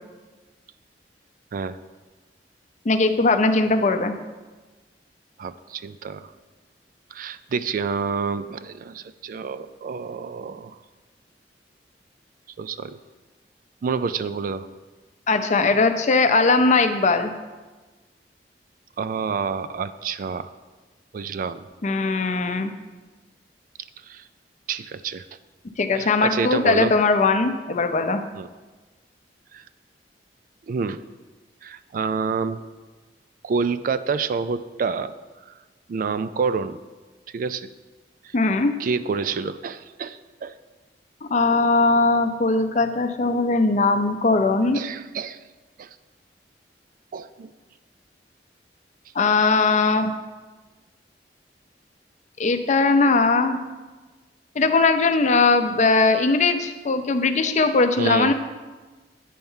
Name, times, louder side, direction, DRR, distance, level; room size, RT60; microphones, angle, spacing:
voice 1, 2.8-4.1 15.3-17.3 21.8-22.7 25.8-28.2 38.3-38.8 41.2-44.8 49.1-50.1 52.4-53.6 54.6-58.3, left 3 dB, 45° left, 8 dB, 0.5 m, -20 dB
voice 2, 5.4-6.3 7.1-10.8 12.6-13.0 13.8-14.7 19.0-20.5 21.1-21.6 24.0-24.2 24.7-25.2 26.0-26.9 28.3-28.5 29.5-29.7 30.7-31.0 31.6-32.6 33.4-35.1 35.9-36.8 37.3-37.7 38.8-40.5 44.7-45.4 45.8-45.9 47.1-47.5 58.0-58.3, right 5 dB, 50° right, 13 dB, 0.3 m, -28 dB
9.2 x 4.4 x 5.5 m, 1.3 s
head